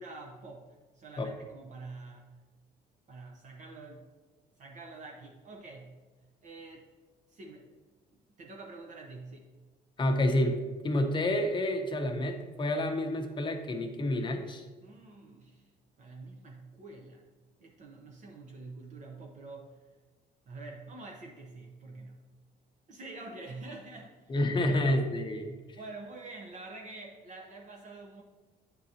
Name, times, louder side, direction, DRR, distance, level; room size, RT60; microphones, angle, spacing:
voice 1, 0.0-2.4 3.1-4.0 4.6-6.0 6.4-6.9 7.3-7.7 8.1-9.5 14.8-15.7 16.0-17.2 17.6-19.8 20.5-22.2 22.9-24.3 24.6-25.0 25.8-28.2, right 3 dB, 45° right, 0 dB, 0.8 m, -46 dB
voice 2, 10.0-14.7 24.3-25.8, left 1 dB, 30° left, 4 dB, 0.8 m, -29 dB
9.1 x 3.8 x 2.8 m, 1.3 s
cardioid pair, 110°, 17 cm